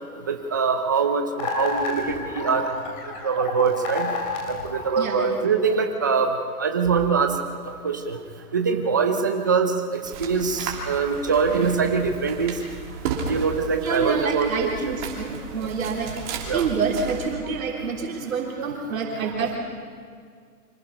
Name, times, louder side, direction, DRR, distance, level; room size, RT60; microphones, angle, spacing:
voice 1, 0.3-2.7 3.2-4.1 4.5-6.3 6.6-7.3 7.8-8.2 8.5-12.6 13.3-14.7 16.5-16.6, right 5 dB, 15° right, 5 dB, 0.5 m, -23 dB
sound 1, 1.4-5.6, left 4 dB, 30° left, 3.2 m, -30 dB
voice 2, 5.0-5.5 13.8-16.2 16.5-19.6, right 5 dB, 65° right, 0 dB, 3.4 m, -27 dB
sound 2, 10.0-17.3, right 5 dB, 35° right, 2.9 m, -34 dB
25.5 x 18.0 x 5.7 m, 2.1 s
hypercardioid pair, 160°, 45 cm